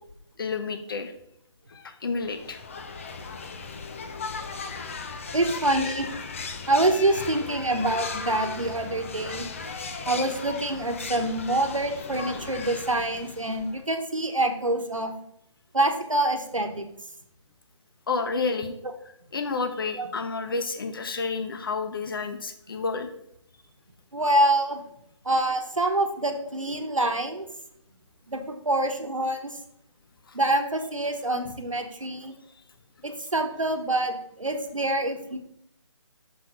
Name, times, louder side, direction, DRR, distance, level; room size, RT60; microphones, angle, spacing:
voice 1, 0.4-1.1 1.7-2.6 18.1-18.7 19.3-23.1 30.3-30.4, left 4 dB, 45° left, 7 dB, 0.8 m, -30 dB
sound 1, 2.2-13.8, left 4 dB, 25° left, 0.5 m, -37 dB
voice 2, 5.3-6.1 6.7-9.5 10.1-15.1 15.7-16.8 20.0-20.1 24.1-24.8 25.2-27.5 28.3-29.6 30.3-32.3 33.0-35.4, right 1 dB, 80° right, 5 dB, 1.2 m, -26 dB
6.3 x 3.4 x 5.9 m, 0.73 s
figure-of-eight pair, 150°, 16 cm